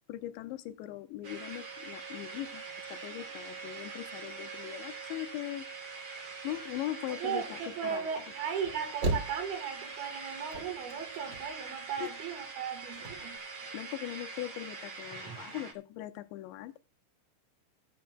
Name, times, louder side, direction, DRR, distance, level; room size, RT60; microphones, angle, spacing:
voice 1, 0.1-2.6 2.9-5.7 6.0-8.1 12.0-12.1 13.7-16.8, left 14 dB, 80° left, 2.7 m, -40 dB
sound 1, 1.2-15.7, right 4 dB, 35° right, 2.9 m, -44 dB
voice 2, 7.1-13.4, right 7 dB, 65° right, 2.6 m, -37 dB
sound 2, 8.6-9.9 10.2-11.8 12.0-12.1 12.3-12.4 12.9-13.4, right 2 dB, 85° right, 0.9 m, -36 dB
17.0 x 11.5 x 2.2 m
omnidirectional pair, 5.8 m